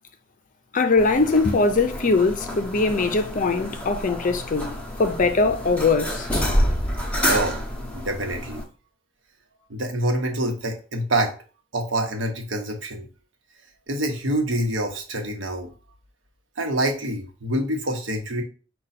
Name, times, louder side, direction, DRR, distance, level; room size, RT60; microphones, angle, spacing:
voice 1, 0.7-6.3, left 3 dB, 40° left, 0.5 m, -21 dB
sound 1, 1.0-8.6, equal, 5° left, 0.8 m, -28 dB
voice 2, 7.3-7.6 7.9-8.6 9.7-11.3 11.7-13.1 13.9-15.7 16.6-18.4, right 1 dB, 65° right, 1.0 m, -26 dB
5.3 x 2.3 x 4.1 m
head